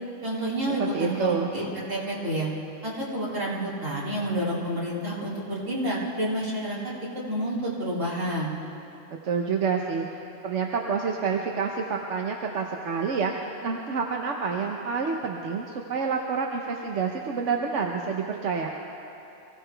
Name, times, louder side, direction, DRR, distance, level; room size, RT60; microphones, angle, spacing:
voice 1, 0.2-2.5 2.8-6.8 7.3-8.5, right 1 dB, 85° right, -6 dB, 3.4 m, -29 dB
voice 2, 0.8-1.5 9.2-10.1 10.4-18.7, right 5 dB, 70° right, 1 dB, 1.2 m, -28 dB
24.0 x 16.0 x 3.4 m, 2.8 s
omnidirectional pair, 1.3 m